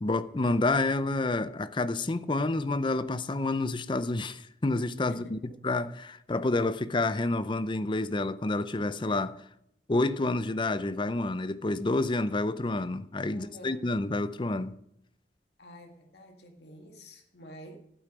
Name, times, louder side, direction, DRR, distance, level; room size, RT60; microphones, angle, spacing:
voice 1, 0.0-5.4 5.6-9.4 9.9-14.7, left 2 dB, 25° left, 0.5 m, -29 dB
voice 2, 13.3-13.9 15.6-17.8, equal, 65° left, 1.9 m, -49 dB
12.0 x 8.7 x 5.0 m
head